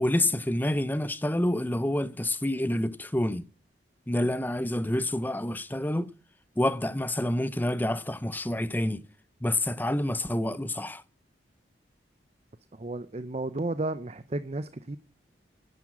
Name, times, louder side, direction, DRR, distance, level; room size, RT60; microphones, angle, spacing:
voice 1, 0.0-3.5 4.1-6.1 6.6-9.0 9.4-11.0, left 1 dB, 10° left, 0.6 m, -28 dB
voice 2, 12.8-15.0, right 2 dB, 35° right, 0.6 m, -33 dB
11.0 x 10.5 x 7.3 m
head